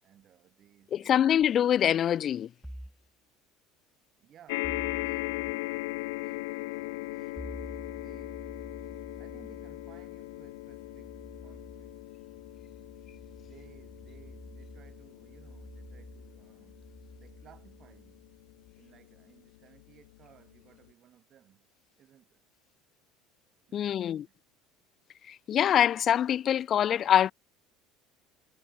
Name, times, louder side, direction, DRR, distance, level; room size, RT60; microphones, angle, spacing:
voice 1, 0.0-1.6 4.2-7.5 7.9-8.5 9.2-12.0 13.5-16.8 17.2-18.2 18.7-21.7 22.0-22.4 23.7-24.4, right 10 dB, 35° right, 7.8 m, -59 dB
voice 2, 0.9-2.5 23.7-24.2 25.3-27.3, left 10 dB, 35° left, 0.5 m, -24 dB
sound 1, 2.6-3.1 4.6-5.6 7.4-18.7, equal, ahead, 3.0 m, -49 dB
sound 2, 4.5-19.0 19.8-19.9 20.2-20.3, left 24 dB, 90° left, 1.5 m, -39 dB
cardioid pair, 145°, 0 cm